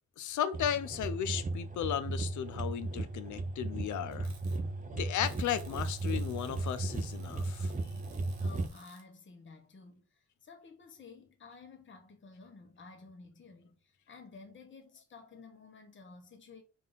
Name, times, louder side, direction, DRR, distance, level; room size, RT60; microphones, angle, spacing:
voice 1, 0.2-4.3 4.9-7.7, left 9 dB, 85° left, 0.5 m, -35 dB
sound 1, 0.5-8.7, right 2 dB, 30° right, 0.5 m, -36 dB
sound 2, 4.1-4.6 5.2-9.0, right 5 dB, 65° right, 1.1 m, -58 dB
voice 2, 8.4-16.6, left 4 dB, 40° left, 0.9 m, -53 dB
3.7 x 2.5 x 3.8 m
cardioid pair, 95°, 29 cm